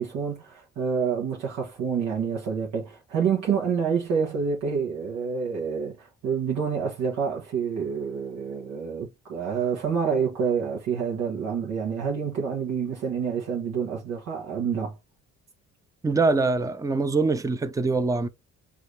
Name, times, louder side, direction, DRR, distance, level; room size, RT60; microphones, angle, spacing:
voice 1, 0.0-15.0, right 6 dB, 85° right, 1.2 m, -28 dB
voice 2, 16.0-18.3, right 3 dB, 10° right, 0.5 m, -23 dB
4.8 x 2.7 x 3.2 m
cardioid pair, 90°, 30 cm